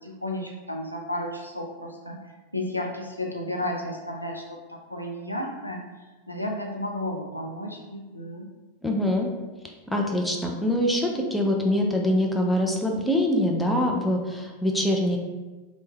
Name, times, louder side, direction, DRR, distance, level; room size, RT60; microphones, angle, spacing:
voice 1, 0.0-2.2 2.5-5.8 6.3-8.5, left 1 dB, 85° left, 0 dB, 0.4 m, -33 dB
voice 2, 8.8-9.3 9.9-15.2, left 1 dB, 5° left, 0 dB, 0.4 m, -24 dB
3.1 x 2.1 x 3.1 m, 1.2 s
figure-of-eight pair, 90°, 0 cm